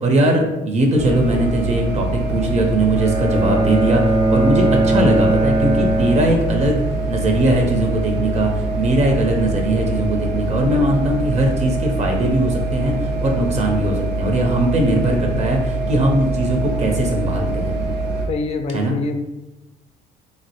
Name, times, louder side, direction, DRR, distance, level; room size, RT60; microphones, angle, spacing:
voice 1, 0.0-4.0 4.3-17.8 18.7-19.0, right 1 dB, 40° right, 2 dB, 0.6 m, -20 dB
sound 1, 1.0-18.3, right 2 dB, 85° right, 0.6 m, -24 dB
Bowed string instrument, 2.9-7.0, right 2 dB, 65° right, 0.9 m, -20 dB
voice 2, 18.3-19.2, left 3 dB, 40° left, 7 dB, 0.3 m, -25 dB
3.2 x 2.0 x 2.8 m, 0.99 s
cardioid pair, 110°, 17 cm